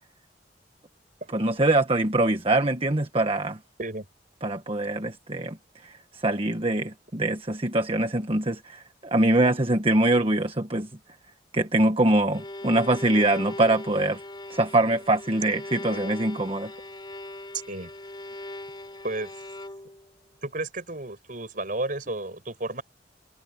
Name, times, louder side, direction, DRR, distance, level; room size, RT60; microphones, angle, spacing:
voice 1, 1.3-3.6 4.4-5.6 5.8-10.9 11.5-14.2 14.5-16.7, right 2 dB, 30° right, 1.4 m, -23 dB
Bowed string instrument, 12.3-20.1, left 1 dB, 25° left, 4.2 m, -39 dB
voice 2, 20.4-22.8, right 2 dB, 50° right, 6.0 m, -32 dB
head